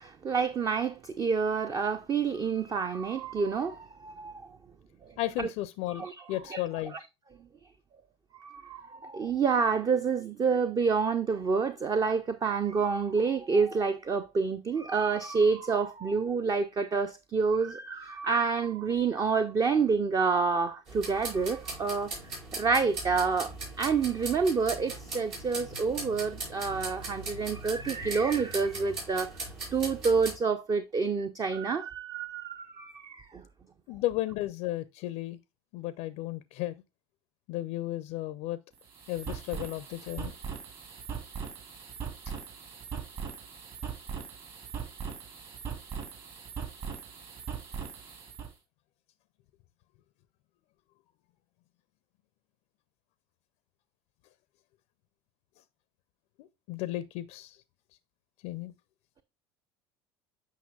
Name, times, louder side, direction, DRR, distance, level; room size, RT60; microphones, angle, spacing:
voice 1, 0.0-4.3 5.4-5.5 6.0-6.1 6.5-6.6 8.4-22.1 22.5-29.3 29.7-33.4, right 5 dB, 25° right, 0.6 m, -28 dB
voice 2, 5.2-7.0 33.9-35.4 35.7-36.7 37.5-38.6 39.1-40.3 42.3-42.4 56.4-57.6 58.4-58.7, left 16 dB, 55° left, 0.5 m, -34 dB
sound 1, 20.9-30.4, right 2 dB, 70° right, 4.7 m, -39 dB
sound 2, 38.7-48.5, right 6 dB, 45° right, 3.3 m, -40 dB
8.4 x 5.7 x 2.4 m
hypercardioid pair, 75°, 14 cm